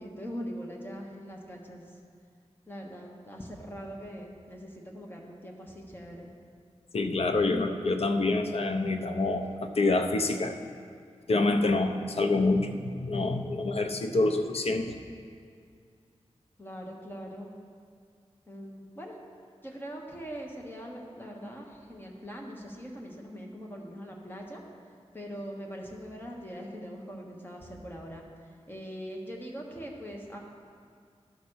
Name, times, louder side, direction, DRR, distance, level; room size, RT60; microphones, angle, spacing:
voice 1, 0.0-2.0 2.7-6.3 16.6-17.5 18.5-19.2 19.6-24.6 25.1-30.4, equal, 20° left, -1 dB, 1.2 m, -42 dB
voice 2, 6.9-10.5 11.3-15.0, left 2 dB, 60° left, 6 dB, 0.6 m, -27 dB
12.0 x 4.1 x 6.3 m, 2.2 s
wide cardioid pair, 110°, 11 cm